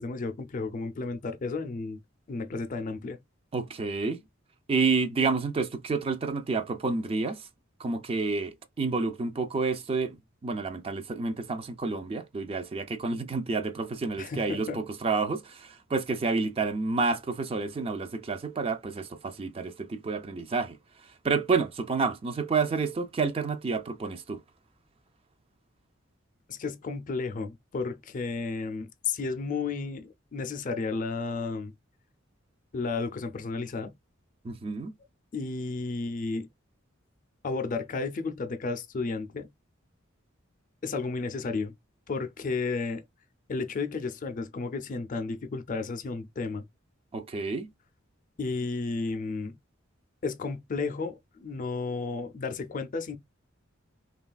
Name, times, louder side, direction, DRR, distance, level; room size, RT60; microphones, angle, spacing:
voice 1, 0.0-2.0 2.3-3.2 14.2-14.8 26.5-31.7 32.7-33.9 35.3-36.5 37.4-39.5 40.8-41.7 42.1-43.0 43.5-46.7 48.4-49.6 50.2-53.2, left 4 dB, 40° left, 0.4 m, -33 dB
voice 2, 3.5-4.2 4.7-7.5 7.8-10.2 10.4-24.4 34.4-34.9 47.1-47.7, right 4 dB, 30° right, 0.3 m, -29 dB
3.1 x 2.3 x 2.3 m
head